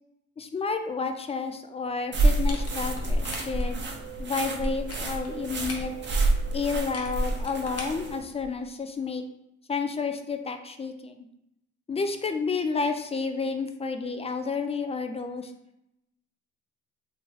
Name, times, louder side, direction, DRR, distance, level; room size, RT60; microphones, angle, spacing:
voice 1, 0.4-3.8 4.2-5.9 6.5-9.2 9.7-11.2 11.9-15.5, left 4 dB, 20° left, 7 dB, 0.3 m, -30 dB
sound 1, 2.1-8.2, right 2 dB, 35° right, 0.6 m, -28 dB
sound 2, 2.2-3.7 4.5-5.9 6.7-8.7, left 2 dB, 50° left, 0.8 m, -42 dB
2.9 x 2.3 x 3.0 m, 0.82 s
hypercardioid pair, 55°, 32 cm